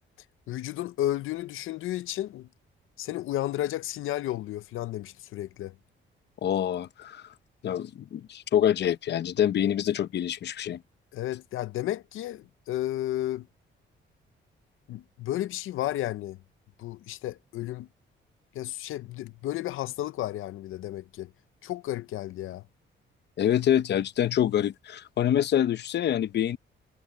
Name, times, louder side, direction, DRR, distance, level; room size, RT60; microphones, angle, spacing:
voice 1, 0.5-2.5 3.0-5.7 11.1-13.5 14.9-16.4 16.8-17.9 18.5-21.3 21.6-22.6, left 14 dB, 85° left, 0.6 m, -32 dB
voice 2, 6.4-7.2 7.6-10.8 23.4-26.6, left 10 dB, 60° left, 0.8 m, -26 dB
cardioid pair, 150°, 20 cm